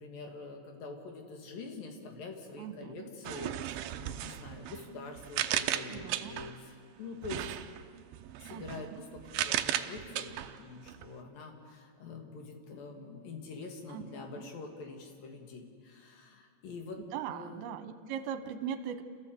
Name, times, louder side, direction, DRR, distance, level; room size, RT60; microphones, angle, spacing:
voice 1, 0.0-7.6 8.4-17.0 17.3-17.6, left 4 dB, 55° left, 3 dB, 3.5 m, -45 dB
voice 2, 2.6-3.1 5.9-6.4 8.5-9.0 13.9-14.1 14.4-14.5 17.1-19.0, right 8 dB, 70° right, 8 dB, 2.7 m, -40 dB
sound 1, 3.2-6.6 7.2-11.1, right 12 dB, 85° right, 2.0 m, -36 dB
28.5 x 15.0 x 7.8 m, 2.2 s
omnidirectional pair, 5.2 m